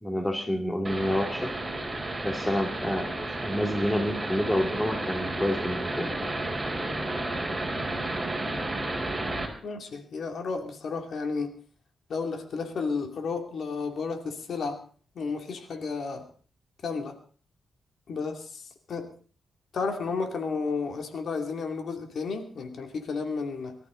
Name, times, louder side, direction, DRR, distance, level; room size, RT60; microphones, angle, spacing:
voice 1, 0.0-1.5 2.2-3.1 3.4-6.1, equal, 10° left, 4 dB, 2.5 m, -28 dB
sound 1, 0.8-9.5, right 2 dB, 15° right, 4.6 m, -32 dB
voice 2, 9.6-11.6 12.1-14.8 15.1-16.3 16.8-17.2 18.1-19.1 19.7-23.8, left 4 dB, 65° left, 5 dB, 2.7 m, -32 dB
23.0 x 13.5 x 4.0 m, 0.41 s
cardioid pair, 115°, 0 cm